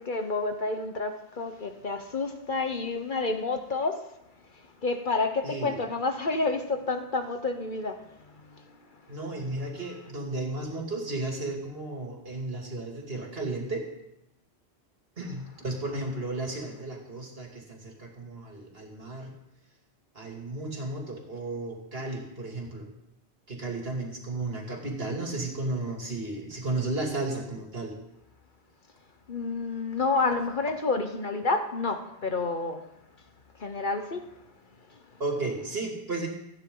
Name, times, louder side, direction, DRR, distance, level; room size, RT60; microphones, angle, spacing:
voice 1, 0.0-4.1 4.5-8.8 29.3-32.9 33.6-34.4 34.9-35.0, left 3 dB, 50° left, 1.2 m, -30 dB
voice 2, 5.4-5.8 9.1-13.8 15.2-19.3 20.1-22.9 23.5-27.9 35.2-36.3, right 2 dB, 60° right, 3.0 m, -34 dB
28.0 x 9.6 x 3.9 m
omnidirectional pair, 1.1 m